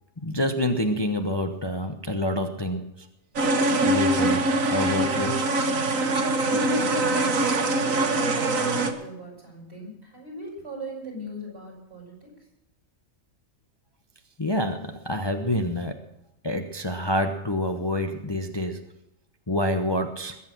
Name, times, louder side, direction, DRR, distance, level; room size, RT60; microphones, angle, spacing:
voice 1, 0.2-3.1 3.8-5.4 14.4-16.0 16.4-18.8 19.5-20.4, left 1 dB, 20° left, 5 dB, 1.0 m, -27 dB
sound 1, 3.4-8.9, right 2 dB, 80° right, 1.9 m, -23 dB
voice 2, 6.2-12.4, right 1 dB, 50° right, 0 dB, 6.8 m, -40 dB
21.5 x 8.6 x 6.2 m, 0.87 s
omnidirectional pair, 1.4 m